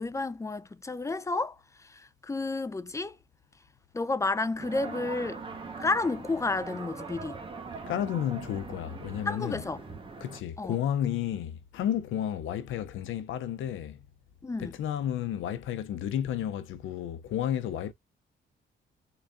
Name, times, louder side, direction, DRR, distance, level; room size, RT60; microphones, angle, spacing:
voice 1, 0.0-3.2 3.9-5.4 5.8-7.4 9.3-9.8 10.6-10.8 14.4-14.7, left 3 dB, 15° left, 0.6 m, -31 dB
sound 1, 4.6-10.4, right 4 dB, 25° right, 1.2 m, -41 dB
voice 2, 7.9-9.6 10.2-14.0 14.6-17.9, left 10 dB, 80° left, 0.7 m, -32 dB
3.9 x 3.3 x 2.6 m
cardioid pair, 90°, 20 cm